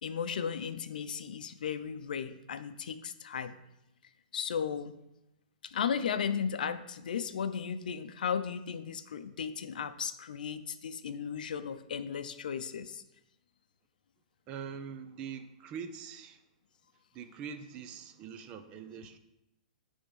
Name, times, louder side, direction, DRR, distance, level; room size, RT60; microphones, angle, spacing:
voice 1, 0.0-3.6 4.3-5.0 5.6-13.0, left 7 dB, 85° left, 12 dB, 0.5 m, -35 dB
voice 2, 14.5-16.4 17.1-19.2, right 7 dB, 20° right, 9 dB, 0.4 m, -43 dB
8.5 x 3.5 x 5.4 m, 0.89 s
hypercardioid pair, 165°, 4 cm